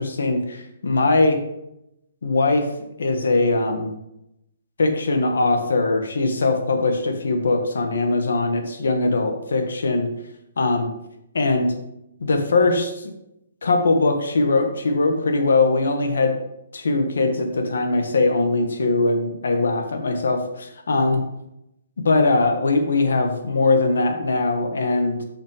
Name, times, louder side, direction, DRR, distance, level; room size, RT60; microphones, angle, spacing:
voice 1, 0.0-1.4 2.2-2.6 3.0-3.9 4.8-10.1 10.6-10.9 11.3-11.7 12.2-13.1 13.6-16.3 16.7-21.2 22.0-25.2, left 3 dB, 80° left, 5 dB, 1.5 m, -21 dB
7.1 x 5.6 x 5.0 m, 0.84 s
hypercardioid pair, 175°, 0 cm